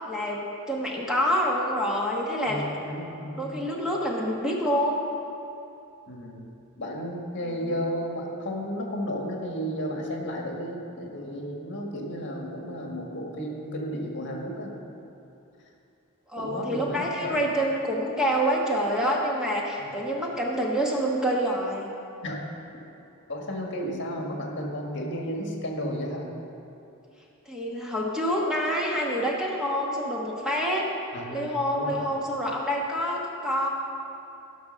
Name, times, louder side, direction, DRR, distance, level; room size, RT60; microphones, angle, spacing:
voice 1, 0.1-2.6 3.4-5.1 7.5-7.7 16.3-21.9 27.5-30.8 31.3-33.7, equal, 5° right, -3 dB, 1.3 m, -27 dB
voice 2, 2.4-3.6 6.1-6.4 6.8-14.8 16.3-17.4 19.8-19.9 22.2-22.4 23.3-26.3 31.1-32.0, equal, 55° left, 0 dB, 1.7 m, -33 dB
15.5 x 6.0 x 6.4 m, 2.7 s
head